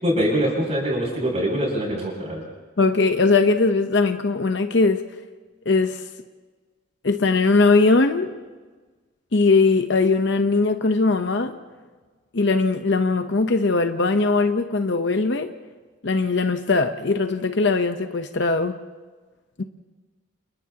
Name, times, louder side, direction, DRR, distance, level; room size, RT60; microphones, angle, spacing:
voice 1, 0.0-2.4, equal, 35° right, -2 dB, 7.6 m, -23 dB
voice 2, 2.8-5.0 5.7-6.0 7.0-8.3 9.3-11.6 12.3-15.5 16.0-18.8 19.6-19.7, left 3 dB, 60° left, 7 dB, 0.9 m, -20 dB
30.0 x 30.0 x 2.9 m, 1.3 s
head